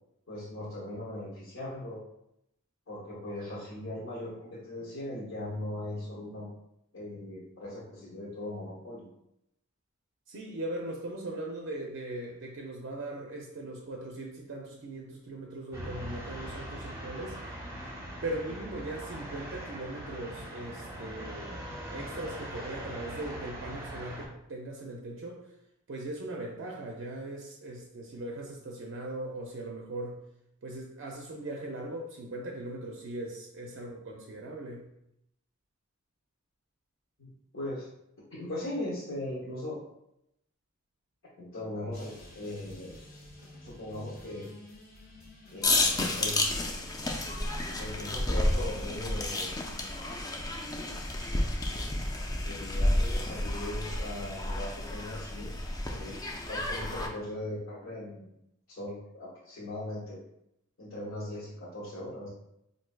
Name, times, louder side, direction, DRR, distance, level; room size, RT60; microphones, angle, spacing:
voice 1, 0.3-2.0 2.9-6.5 6.9-9.0 37.2-37.9 38.3-39.8 41.4-42.9 43.6-44.5 45.5-46.5 47.8-49.7 52.4-55.5 55.9-56.2 56.5-58.3 58.7-60.2 60.8-62.3, left 1 dB, 65° left, -8 dB, 1.0 m, -39 dB
voice 2, 10.3-17.4 18.2-21.6 21.9-25.5 25.9-30.2 30.6-34.9, right 2 dB, 60° right, 0 dB, 0.4 m, -39 dB
sound 1, 15.7-24.3, equal, 15° right, 0.6 m, -41 dB
sound 2, 41.9-52.3, left 1 dB, 45° left, 0.7 m, -51 dB
sound 3, 45.6-57.1, left 1 dB, 15° left, 0.3 m, -31 dB
4.4 x 2.6 x 2.2 m, 0.81 s
head